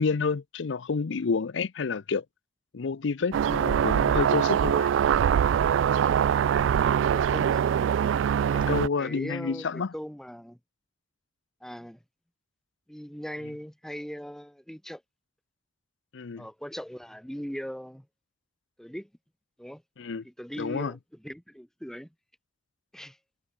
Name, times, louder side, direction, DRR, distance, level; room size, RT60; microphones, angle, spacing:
voice 1, 0.0-2.2 2.7-4.9 8.5-9.9 16.1-16.5 20.0-20.2 20.6-20.9, left 4 dB, 75° left, 0.6 m, -29 dB
sound 1, 3.3-8.9, right 8 dB, 85° right, 0.3 m, -23 dB
voice 2, 7.1-7.8 9.0-10.6 11.6-12.0 12.9-15.0 16.4-18.1 18.8-19.1 19.6-19.8 20.2-21.0 21.2-22.1 22.9-23.2, equal, 5° left, 0.9 m, -39 dB
head